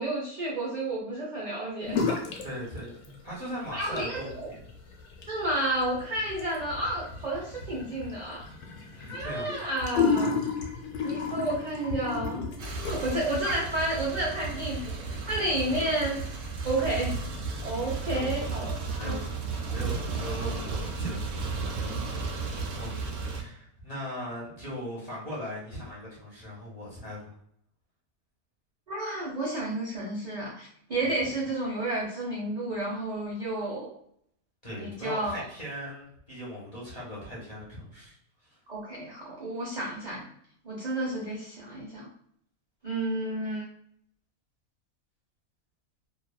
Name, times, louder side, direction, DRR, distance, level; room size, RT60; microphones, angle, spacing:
voice 1, 0.0-2.0 3.7-4.5 5.3-8.4 9.1-10.3 11.0-12.4 12.9-16.2 16.6-17.1 17.6-18.6 18.9-19.2 28.9-33.9 34.8-35.4 38.7-40.3 40.6-42.1 42.8-43.6, right 1 dB, 55° right, -5 dB, 0.4 m, -31 dB
sound 1, 1.9-2.5 2.8-3.4 3.8-13.3, left 5 dB, 65° left, 0.8 m, -32 dB
voice 2, 2.4-4.6 8.9-9.5 15.7-15.9 18.1-18.5 19.0-19.4 19.7-27.3 31.0-31.3 34.6-38.6, equal, 35° left, -6 dB, 0.7 m, -39 dB
sound 2, 12.6-23.4, right 4 dB, 85° right, 1.1 m, -34 dB
2.7 x 2.3 x 2.2 m, 0.69 s
omnidirectional pair, 1.5 m